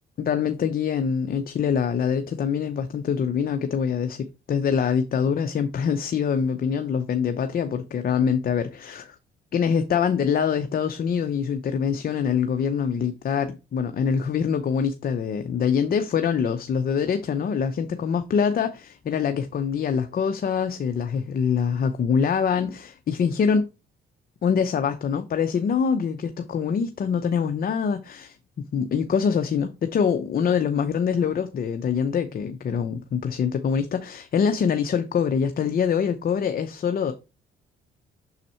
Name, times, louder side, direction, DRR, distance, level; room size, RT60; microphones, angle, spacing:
voice 1, 0.2-9.1 9.5-23.6 24.4-37.1, left 7 dB, 50° left, 0.7 m, -24 dB
6.4 x 4.1 x 4.3 m
cardioid pair, 90°, 20 cm